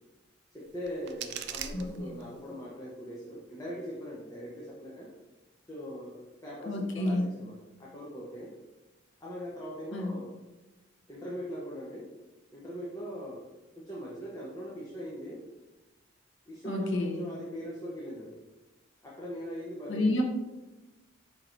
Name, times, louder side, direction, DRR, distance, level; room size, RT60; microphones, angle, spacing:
voice 1, 0.5-5.1 5.7-8.5 9.2-10.3 11.1-12.1 12.5-13.5 13.8-15.4 16.5-18.4 19.0-20.2, equal, 15° left, -5 dB, 0.7 m, -40 dB
sound 1, 0.6-2.6, right 8 dB, 55° right, 0.3 m, -42 dB
voice 2, 1.7-2.1 6.6-7.3 9.9-10.1 16.6-17.2 19.9-20.2, left 1 dB, 60° left, 2 dB, 0.7 m, -30 dB
4.6 x 4.4 x 2.6 m, 1.1 s
head